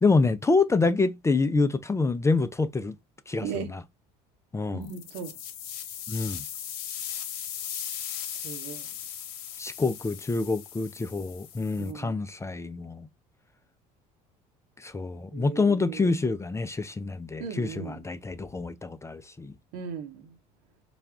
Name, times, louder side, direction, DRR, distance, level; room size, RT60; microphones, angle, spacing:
voice 1, 0.0-3.0 3.3-3.5 3.7-3.8 4.5-4.9 6.1-6.4 9.6-13.1 14.8-19.5, left 3 dB, 15° left, 0.4 m, -26 dB
voice 2, 3.4-3.8 4.7-5.4 8.1-8.9 11.8-12.2 15.3-16.1 17.4-18.0 19.7-20.4, right 6 dB, 75° right, 1.1 m, -38 dB
sound 1, 4.8-11.9, left 9 dB, 85° left, 0.8 m, -38 dB
4.2 x 2.3 x 3.5 m
supercardioid pair, 80°, 18 cm